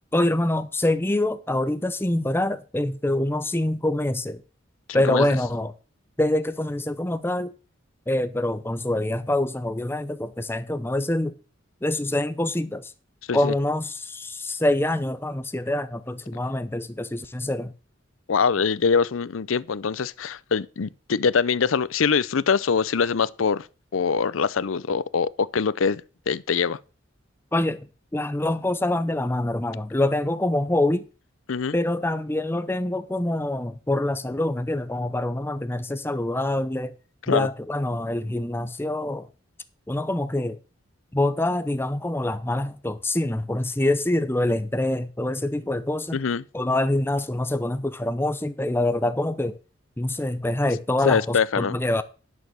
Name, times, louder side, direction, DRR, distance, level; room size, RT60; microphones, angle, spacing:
voice 1, 0.1-4.4 4.9-5.7 6.2-7.5 8.1-11.4 11.8-12.9 13.3-17.7 27.5-31.1 31.7-36.9 37.3-39.3 39.9-40.6 41.1-46.2 46.5-49.6 50.0-52.0, left 1 dB, 10° left, 0.6 m, -25 dB
voice 2, 4.9-5.3 13.3-13.5 18.3-23.7 23.9-26.0 26.3-26.8 31.5-31.7 37.3-37.5 46.1-46.4 51.1-51.8, left 5 dB, 85° left, 0.6 m, -23 dB
11.0 x 6.6 x 6.3 m
head